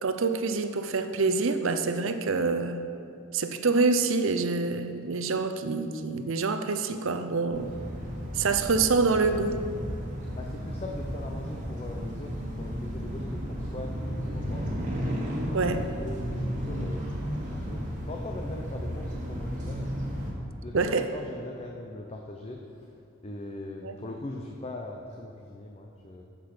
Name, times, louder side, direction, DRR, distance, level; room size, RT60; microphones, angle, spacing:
voice 1, 0.0-2.8 3.3-7.7 8.3-9.6 15.5-15.8 20.7-21.1 23.8-24.0, right 4 dB, 65° right, 8 dB, 0.7 m, -26 dB
sound 1, 7.5-20.3, equal, 40° right, 1.6 m, -33 dB
voice 2, 10.2-13.9 14.2-14.6 15.5-17.8 18.1-19.9 20.6-22.6 23.2-26.2, left 2 dB, 30° left, 1 dB, 0.6 m, -40 dB
14.0 x 6.1 x 5.1 m, 2.5 s
head